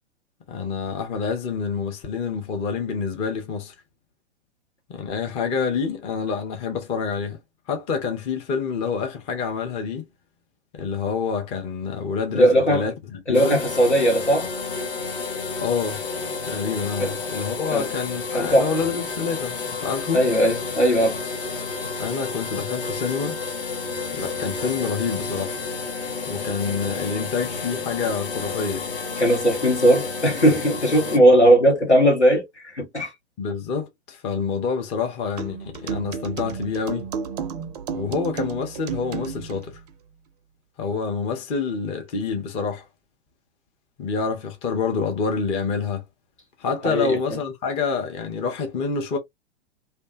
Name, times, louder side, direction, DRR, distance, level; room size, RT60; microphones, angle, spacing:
voice 1, 0.5-3.7 4.9-7.4 7.7-10.0 10.7-13.6 15.6-16.0 16.4-20.2 22.0-23.4 24.1-25.6 26.3-28.9 33.4-37.1 37.9-39.8 40.8-42.8 44.0-46.0 46.6-49.2, left 5 dB, 20° left, 0.5 m, -27 dB
voice 2, 12.3-12.9 13.3-14.5 17.0-17.2 17.7-17.9 18.3-18.7 20.1-21.2 29.2-33.1 46.8-47.2, right 1 dB, 90° left, 1.2 m, -18 dB
sound 1, 13.3-31.2, left 4 dB, 55° left, 0.8 m, -31 dB
sound 2, 35.4-39.6, right 6 dB, 40° right, 0.4 m, -32 dB
2.4 x 2.1 x 2.5 m
figure-of-eight pair, 105°, 33 cm